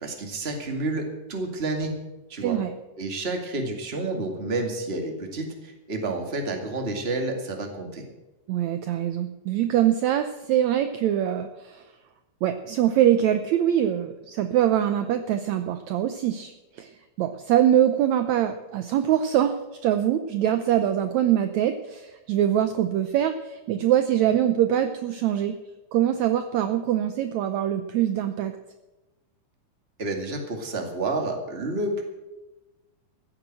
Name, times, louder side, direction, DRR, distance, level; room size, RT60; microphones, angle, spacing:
voice 1, 0.0-1.9 2.3-2.6 3.0-8.0 30.0-32.0, right 2 dB, 20° right, 3 dB, 2.0 m, -30 dB
voice 2, 2.4-2.7 8.5-11.8 12.4-16.9 17.2-19.6 19.8-25.6 25.9-28.5, right 11 dB, 75° right, 8 dB, 1.8 m, -23 dB
15.0 x 9.2 x 7.7 m, 1.1 s
omnidirectional pair, 3.9 m